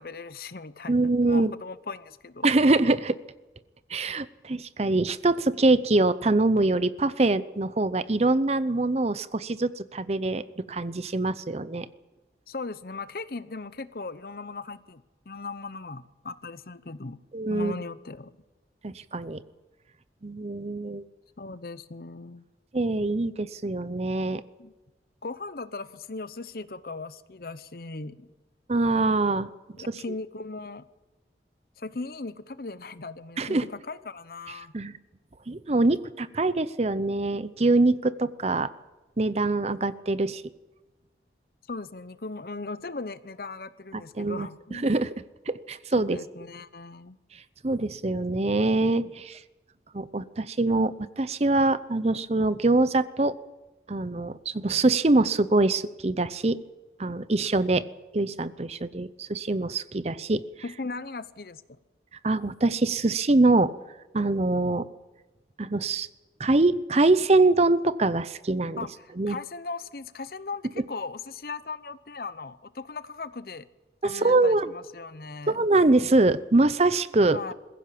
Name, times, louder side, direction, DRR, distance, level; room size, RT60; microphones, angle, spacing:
voice 1, 0.0-2.4 12.5-17.2 17.5-18.4 21.4-22.4 24.6-24.7 25.2-28.3 29.7-30.9 31.8-34.7 41.7-44.9 46.1-47.2 60.6-61.6 68.8-73.7 74.0-75.7 77.3-77.5, left 3 dB, 55° left, 15 dB, 0.8 m, -38 dB
voice 2, 0.9-1.5 2.4-3.2 3.9-11.9 17.3-17.7 18.8-19.4 20.2-21.0 22.7-24.4 28.7-29.5 33.4-33.6 34.7-34.9 35.5-38.7 39.2-40.4 44.2-45.1 45.5-46.2 47.6-49.4 49.9-53.4 53.9-56.6 57.0-57.8 58.1-60.4 62.2-63.7 64.1-64.9 65.6-66.1 66.4-68.8 69.2-69.4 74.0-74.7 75.5-77.5, right 2 dB, 35° right, 15 dB, 0.7 m, -24 dB
22.0 x 15.5 x 8.6 m, 1.2 s
head